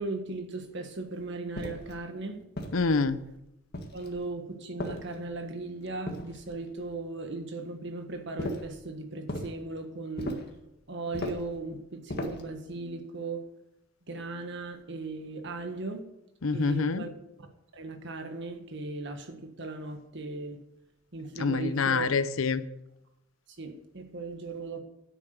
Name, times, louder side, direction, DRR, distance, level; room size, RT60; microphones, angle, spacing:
voice 1, 0.0-2.4 3.9-10.4 10.9-13.4 14.1-16.0 16.5-17.1 17.4-17.5 17.7-20.6 21.1-22.1 23.6-24.8, right 3 dB, 60° right, 6 dB, 1.6 m, -37 dB
sound 1, 1.6-2.0 2.6-3.2 3.7-4.2 4.8-5.4 6.1-6.7 8.4-8.8 9.3-9.6 10.2-10.6 11.1-11.5 12.1-12.5, left 1 dB, 50° left, 1.7 m, -37 dB
voice 2, 2.7-3.2 16.4-17.0 21.4-22.6, left 4 dB, 75° left, 14 dB, 0.7 m, -26 dB
10.0 x 8.4 x 6.6 m, 0.87 s
head